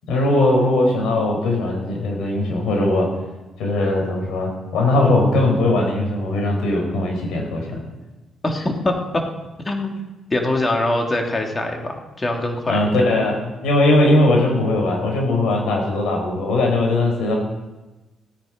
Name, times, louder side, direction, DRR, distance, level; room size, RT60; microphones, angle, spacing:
voice 1, 0.1-3.1 3.6-7.8 12.7-17.3, left 2 dB, 85° left, 0 dB, 4.7 m, -19 dB
voice 2, 8.4-8.9 9.6-10.0 10.3-12.8, left 2 dB, 25° left, 2 dB, 2.4 m, -23 dB
17.0 x 9.4 x 5.1 m, 1.1 s
cardioid pair, 90°, 0 cm